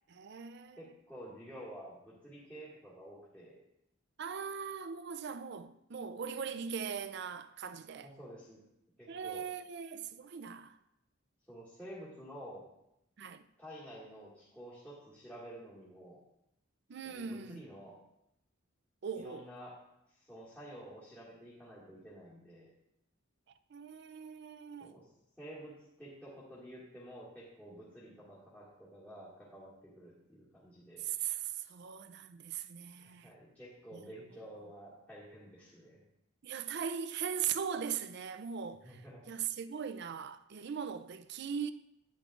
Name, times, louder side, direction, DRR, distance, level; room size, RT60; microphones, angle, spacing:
voice 1, 0.1-0.8 4.2-8.1 9.1-10.8 13.2-13.4 16.9-17.6 19.0-19.4 23.7-24.9 31.0-33.3 33.9-34.0 36.4-38.9 39.3-41.7, right 7 dB, 60° right, 0.4 m, -39 dB
voice 2, 0.8-3.6 8.0-8.6 9.0-9.5 11.5-12.6 13.6-16.2 17.0-17.9 19.1-19.8 20.1-22.7 24.8-25.1 25.4-31.1 33.0-36.0 38.8-39.2, equal, 10° left, 2.0 m, -50 dB
10.5 x 9.5 x 2.5 m
head